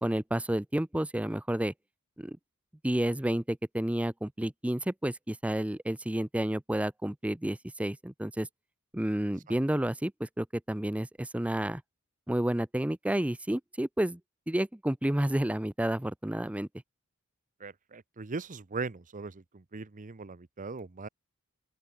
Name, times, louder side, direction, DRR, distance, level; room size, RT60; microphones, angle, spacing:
voice 1, 0.0-1.7 2.2-2.4 2.8-8.5 8.9-11.8 12.3-14.2 14.5-16.7, right 1 dB, 5° right, 0.5 m, -30 dB
voice 2, 17.6-21.1, right 4 dB, 35° right, 0.8 m, -39 dB
open air
head